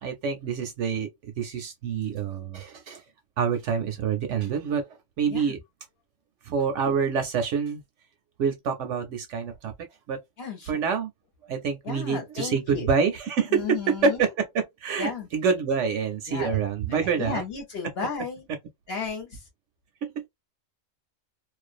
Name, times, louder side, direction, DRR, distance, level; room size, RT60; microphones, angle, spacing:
voice 1, 0.0-3.0 3.4-4.9 5.2-5.6 6.4-7.8 8.4-9.7 10.1-10.2 10.7-11.1 11.4-17.4 20.0-20.2, right 6 dB, 65° right, 0.8 m, -27 dB
voice 2, 10.4-10.8 11.8-12.9 13.5-14.2 15.0-15.3 16.3-16.6 16.9-18.5 18.9-19.4, left 6 dB, 50° left, 0.9 m, -34 dB
2.4 x 2.2 x 2.4 m
omnidirectional pair, 1.5 m